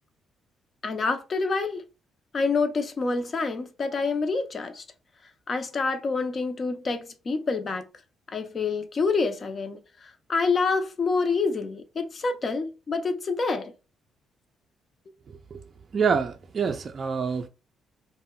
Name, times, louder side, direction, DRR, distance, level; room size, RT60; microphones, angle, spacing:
voice 1, 0.8-1.8 2.3-4.8 5.5-7.8 8.3-13.7, left 4 dB, 40° left, 0.5 m, -27 dB
voice 2, 15.9-17.5, right 6 dB, 45° right, 0.3 m, -26 dB
2.2 x 2.1 x 3.6 m
cardioid pair, 90°, 0 cm